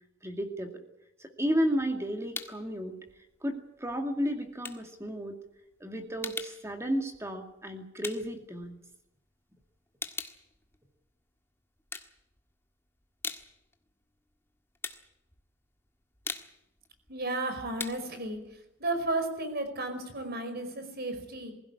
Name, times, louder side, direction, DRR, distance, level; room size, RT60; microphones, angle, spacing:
voice 1, 0.2-0.8 1.2-2.9 3.4-5.3 5.8-8.8, equal, 15° right, 4 dB, 2.3 m, -32 dB
sound 1, 1.6-2.7 3.1-9.3 9.6-11.4 11.8-12.7 13.0-19.7, left 3 dB, 10° left, 1.6 m, -43 dB
voice 2, 17.1-18.4 18.8-21.5, right 2 dB, 50° right, 8 dB, 5.1 m, -33 dB
21.5 x 16.5 x 9.7 m, 0.83 s
head